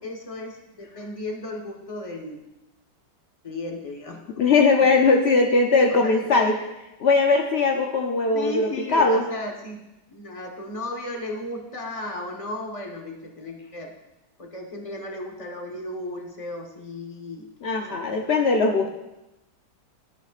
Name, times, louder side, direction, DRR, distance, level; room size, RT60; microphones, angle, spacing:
voice 1, 0.0-2.4 3.4-4.4 4.8-4.9 5.9-6.3 8.3-13.9 14.4-18.0, left 1 dB, 20° left, 1 dB, 1.1 m, -35 dB
voice 2, 4.4-6.5 7.0-8.5 8.9-9.2 17.6-18.9, left 3 dB, 70° left, 2 dB, 0.6 m, -19 dB
12.5 x 11.0 x 2.5 m, 0.96 s
omnidirectional pair, 2.0 m